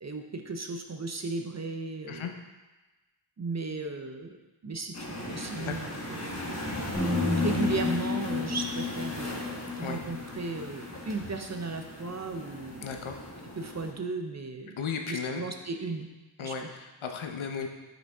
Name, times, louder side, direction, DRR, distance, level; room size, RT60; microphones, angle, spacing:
voice 1, 0.0-2.3 3.4-4.4 4.6-6.4 7.2-9.5 9.8-12.9 13.6-14.8 15.1-16.1 16.4-16.7, right 3 dB, 35° right, 5 dB, 0.5 m, -35 dB
sound 1, 4.9-13.9, left 1 dB, 30° left, 1.1 m, -38 dB
voice 2, 5.6-5.9 9.8-10.0 12.8-13.2 14.8-15.5 16.4-17.7, left 6 dB, 70° left, 4 dB, 0.8 m, -35 dB
sound 2, 6.9-11.1, left 5 dB, 10° left, 1.3 m, -31 dB
6.0 x 5.1 x 3.4 m, 1.1 s
wide cardioid pair, 75°, 50 cm